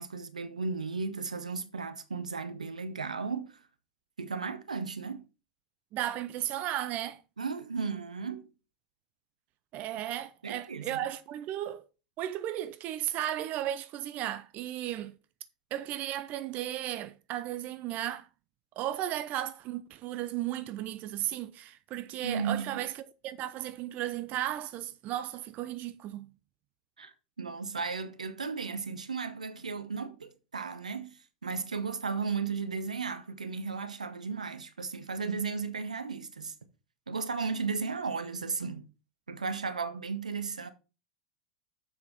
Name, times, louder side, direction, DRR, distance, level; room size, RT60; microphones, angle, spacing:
voice 1, 0.0-3.6 4.2-5.2 7.4-8.5 10.4-11.0 22.2-22.8 27.0-36.5 37.1-38.9 39.3-40.7, right 5 dB, 85° right, 1.0 m, -35 dB
voice 2, 5.9-7.2 9.7-11.8 12.2-15.1 15.7-18.3 18.8-26.3, right 12 dB, 45° right, 0.6 m, -35 dB
7.4 x 6.0 x 4.5 m
figure-of-eight pair, 85°, 4 cm